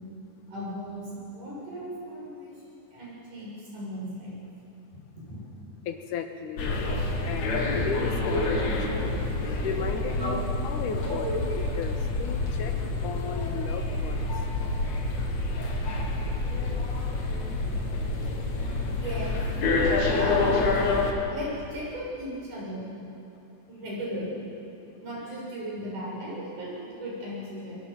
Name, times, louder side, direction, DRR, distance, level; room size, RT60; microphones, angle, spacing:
voice 1, 0.5-4.4 4.9-5.4 8.3-8.4 9.9-10.4 11.0-11.3 17.8-19.6 19.9-20.7 21.3-22.8 23.7-24.4 25.0-27.8, right 1 dB, 85° right, -5 dB, 8.5 m, -37 dB
voice 2, 5.9-6.8 7.3-9.1 9.6-11.5 11.8-12.8 13.0-14.3, left 6 dB, 85° left, 6 dB, 2.9 m, -35 dB
sound 1, 6.6-21.1, left 2 dB, 65° left, 3.3 m, -28 dB
24.0 x 22.5 x 6.1 m, 2.7 s
omnidirectional pair, 3.5 m